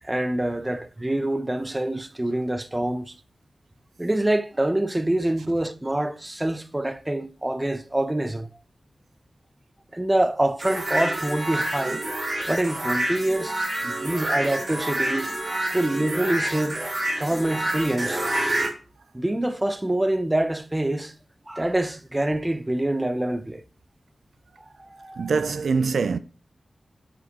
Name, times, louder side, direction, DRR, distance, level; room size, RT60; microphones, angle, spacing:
voice 1, 0.0-3.1 4.0-8.5 9.9-12.0 12.5-13.6 13.8-15.3 15.7-16.8 17.2-18.2 19.1-21.1 21.5-23.6 24.8-25.3, right 1 dB, 15° right, 0.5 m, -25 dB
sound 1, 10.6-18.7, right 1 dB, 40° right, 2.4 m, -28 dB
voice 2, 25.2-26.2, right 5 dB, 85° right, 0.4 m, -23 dB
7.9 x 5.1 x 2.9 m
wide cardioid pair, 125°, 0 cm